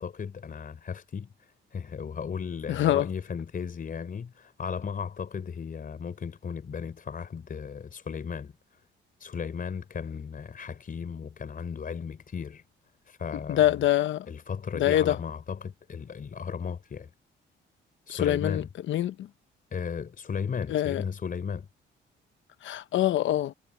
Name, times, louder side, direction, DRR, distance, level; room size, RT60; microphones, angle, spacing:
voice 1, 0.0-8.5 9.2-12.6 13.1-13.8 14.3-17.1 18.1-18.7 19.7-21.7, left 6 dB, 45° left, 4.0 m, -35 dB
voice 2, 2.7-3.1 13.5-14.3 14.7-15.2 18.1-19.3 20.7-21.0 22.6-23.5, left 13 dB, 75° left, 1.0 m, -25 dB
cardioid pair, 90°, 20 cm